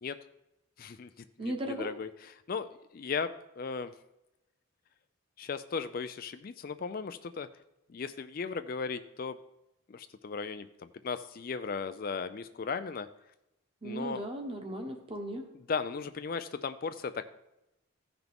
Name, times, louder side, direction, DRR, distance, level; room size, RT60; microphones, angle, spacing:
voice 1, 0.8-3.9 5.4-7.5 7.9-9.4 9.9-13.1 13.8-14.2 15.5-17.3, left 5 dB, 45° left, 11 dB, 0.4 m, -37 dB
voice 2, 1.4-1.9 13.8-15.4, right 1 dB, 25° right, 3 dB, 1.2 m, -36 dB
15.0 x 5.9 x 3.5 m, 0.91 s
head